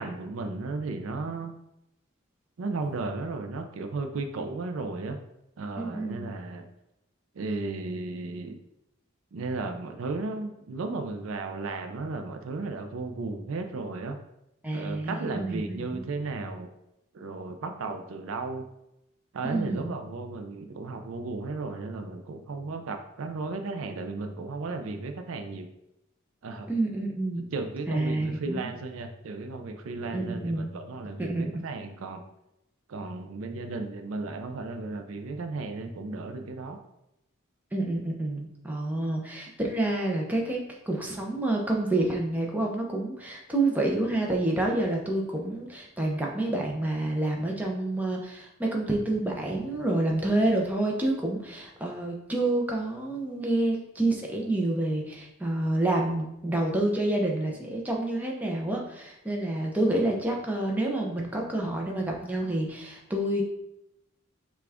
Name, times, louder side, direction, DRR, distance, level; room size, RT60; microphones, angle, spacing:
voice 1, 0.0-1.5 2.6-5.2 5.6-6.7 7.4-8.6 9.3-14.2 14.7-16.7 17.1-18.6 19.3-25.7 26.4-26.7 27.5-32.2 32.9-36.8, right 3 dB, 70° right, 6 dB, 0.4 m, -34 dB
voice 2, 5.8-6.3 14.6-16.0 19.4-19.9 26.7-27.5 27.9-28.6 30.0-30.7 31.2-31.5 37.7-40.6 40.9-63.4, right 2 dB, 10° right, -1 dB, 0.6 m, -28 dB
5.9 x 2.4 x 3.4 m, 0.86 s
head